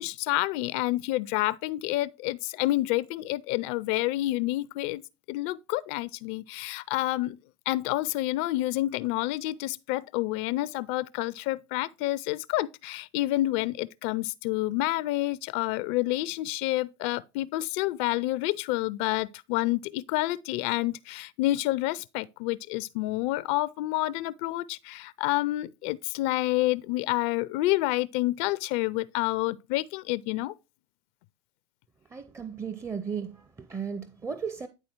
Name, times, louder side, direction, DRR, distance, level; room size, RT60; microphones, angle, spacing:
voice 1, 0.0-5.0 5.3-7.4 7.7-30.5, left 17 dB, 55° left, 0.4 m, -29 dB
voice 2, 32.1-34.7, right 6 dB, 20° right, 0.6 m, -35 dB
9.9 x 4.0 x 4.4 m
hypercardioid pair, 75°, 15 cm